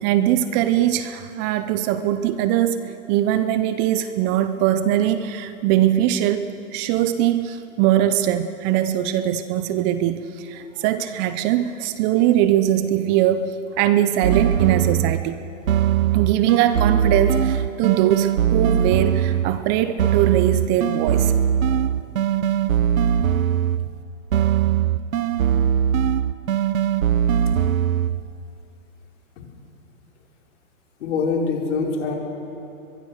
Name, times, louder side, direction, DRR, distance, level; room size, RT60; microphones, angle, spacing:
voice 1, 0.0-15.4 16.1-21.3, right 11 dB, 25° right, 12 dB, 0.7 m, -21 dB
sound 1, 14.2-15.3 15.7-19.6 20.0-24.0 24.3-28.3, right 9 dB, 80° right, 0.9 m, -21 dB
voice 2, 31.0-32.2, left 4 dB, 60° left, -1 dB, 5.0 m, -23 dB
23.0 x 21.5 x 6.5 m, 2.9 s
hypercardioid pair, 135°, 40 cm